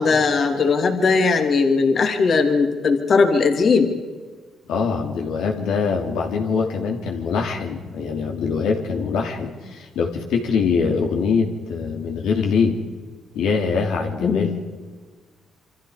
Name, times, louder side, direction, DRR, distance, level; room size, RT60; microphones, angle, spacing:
voice 1, 0.0-3.9 14.2-14.5, left 4 dB, 50° left, 5 dB, 2.9 m, -18 dB
voice 2, 4.7-12.8 13.3-14.5, left 5 dB, 85° left, 2 dB, 2.9 m, -23 dB
27.5 x 25.0 x 5.1 m, 1.4 s
cardioid pair, 90°, 0 cm